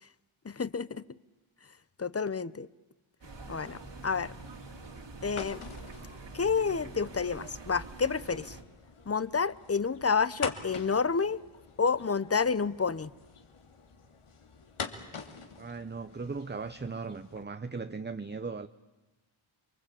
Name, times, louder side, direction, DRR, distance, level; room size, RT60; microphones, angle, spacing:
voice 1, 0.4-1.0 2.0-2.7 3.5-4.3 5.2-5.6 6.3-8.6 9.1-11.4 11.8-13.1, left 5 dB, 30° left, 0.9 m, -29 dB
sound 1, 3.2-8.6, right 3 dB, 60° right, 3.1 m, -46 dB
sound 2, 3.3-17.4, left 5 dB, 85° left, 2.7 m, -46 dB
voice 2, 15.6-18.7, right 4 dB, 20° right, 0.9 m, -38 dB
29.0 x 24.0 x 8.6 m
wide cardioid pair, 80°, 49 cm